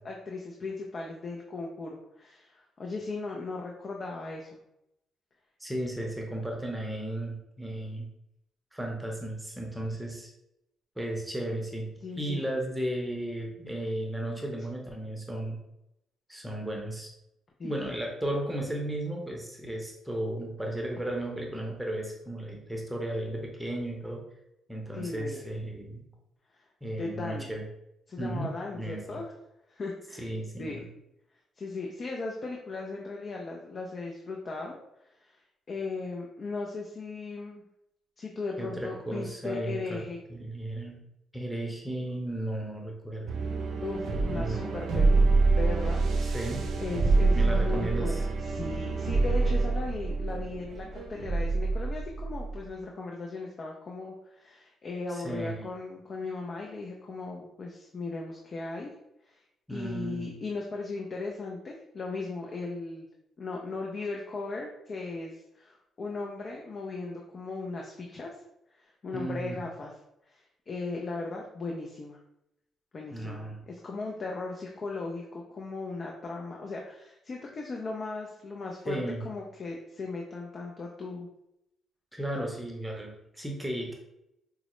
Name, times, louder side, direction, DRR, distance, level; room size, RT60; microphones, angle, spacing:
voice 1, 0.0-4.6 12.0-12.4 17.6-17.9 24.9-25.5 27.0-27.5 28.1-29.3 29.7-30.3 30.6-30.9 31.6-34.8 35.2-35.3 35.7-37.6 38.2-40.2 43.8-46.4 46.8-58.9 59.3-59.4 59.7-63.1 63.4-68.3 68.8-69.9 70.3-72.2 72.9-81.3, left 3 dB, 45° left, 0 dB, 0.5 m, -37 dB
voice 2, 5.6-8.1 8.7-10.3 11.0-11.9 12.2-15.6 16.3-17.1 17.6-24.2 24.7-26.0 26.8-27.6 28.2-29.2 30.2-30.8 38.6-41.0 41.3-43.4 44.3-44.8 46.2-46.6 47.3-48.2 55.1-55.7 59.7-60.3 69.1-69.6 73.1-73.6 78.9-79.3 82.1-83.9, right 1 dB, 5° right, 0 dB, 0.7 m, -34 dB
sound 1, 43.3-52.7, right 3 dB, 70° right, 0.5 m, -26 dB
4.7 x 2.0 x 3.0 m, 0.84 s
cardioid pair, 90°, 0 cm